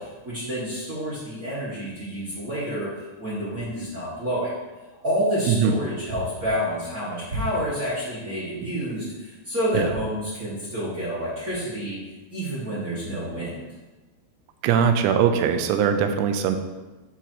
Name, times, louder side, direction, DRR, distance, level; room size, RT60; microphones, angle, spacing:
voice 1, 0.0-4.5 5.0-12.0 12.3-13.5, equal, 45° right, -9 dB, 1.1 m, -28 dB
voice 2, 14.6-16.6, right 7 dB, 90° right, 7 dB, 2.8 m, -21 dB
13.0 x 4.6 x 3.0 m, 1.2 s
omnidirectional pair, 4.8 m